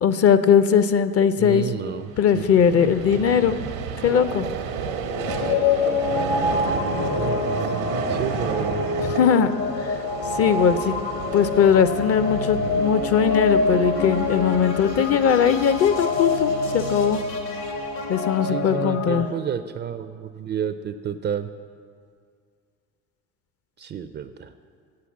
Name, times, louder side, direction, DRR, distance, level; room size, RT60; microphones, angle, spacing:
voice 1, 0.0-1.6 2.2-3.6 4.0-4.5 9.0-9.5 9.8-9.9 10.4-10.9 11.3-17.2 18.1-19.3, left 7 dB, 40° left, 12 dB, 0.5 m, -19 dB
voice 2, 1.4-2.4 7.1-8.8 12.6-12.8 18.4-21.5 23.8-24.5, right 8 dB, 30° right, 11 dB, 0.4 m, -30 dB
Vehicle, 1.9-18.3, right 6 dB, 85° right, 0.9 m, -32 dB
sound 1, 5.1-19.2, left 4 dB, 60° left, 1.0 m, -26 dB
sound 2, 12.6-19.0, left 3 dB, 80° left, 1.6 m, -36 dB
8.0 x 7.6 x 7.2 m, 2.1 s
hypercardioid pair, 65°, 39 cm